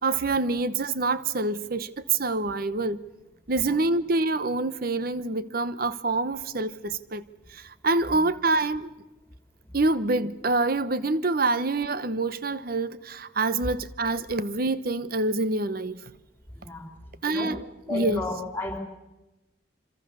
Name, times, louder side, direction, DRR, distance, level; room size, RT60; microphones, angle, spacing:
voice 1, 0.0-3.0 3.5-7.2 7.5-8.9 9.7-16.0 17.2-17.6 17.9-18.2, right 3 dB, 50° right, 1.0 m, -26 dB
voice 2, 16.5-16.9 17.2-17.6 17.9-18.8, left 2 dB, 10° left, 3.6 m, -33 dB
26.5 x 26.0 x 7.0 m
head